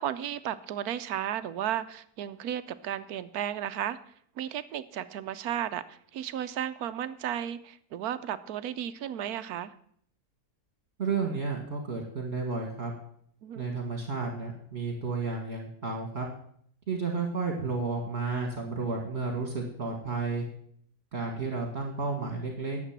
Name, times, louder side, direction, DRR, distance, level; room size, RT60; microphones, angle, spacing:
voice 1, 0.0-4.0 4.4-9.7 13.4-13.7, right 10 dB, 75° right, 13 dB, 1.1 m, -34 dB
voice 2, 11.0-12.9 13.6-16.3 16.9-20.4 21.1-22.8, right 4 dB, 40° right, 1 dB, 2.0 m, -32 dB
11.0 x 7.6 x 7.4 m, 0.64 s
omnidirectional pair, 1.7 m